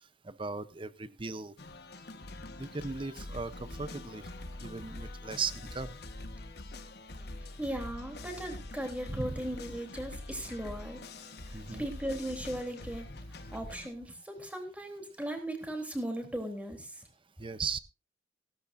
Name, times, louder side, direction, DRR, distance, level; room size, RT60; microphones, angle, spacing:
voice 1, 0.2-1.6 2.6-4.2 4.6-5.9 9.1-9.4 11.5-11.9 17.4-17.8, right 4 dB, 30° right, 15 dB, 0.8 m, -37 dB
sound 1, 1.6-13.9, left 2 dB, 65° left, 1.4 m, -45 dB
voice 2, 7.6-11.0 11.5-13.2 13.5-16.9, right 1 dB, 10° right, 4 dB, 3.4 m, -37 dB
17.5 x 13.0 x 2.6 m, 0.28 s
head